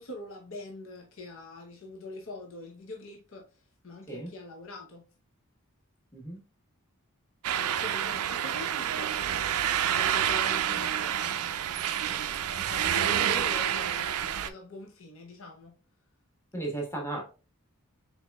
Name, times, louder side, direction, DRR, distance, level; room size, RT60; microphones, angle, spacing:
voice 1, 0.0-5.0 7.5-9.4 9.9-11.4 12.1-15.7, left 2 dB, 60° left, 0.8 m, -43 dB
sound 1, 7.4-14.5, right 10 dB, 85° right, 0.4 m, -28 dB
voice 2, 16.5-17.2, right 2 dB, 10° left, 1.2 m, -35 dB
4.6 x 4.1 x 2.2 m
head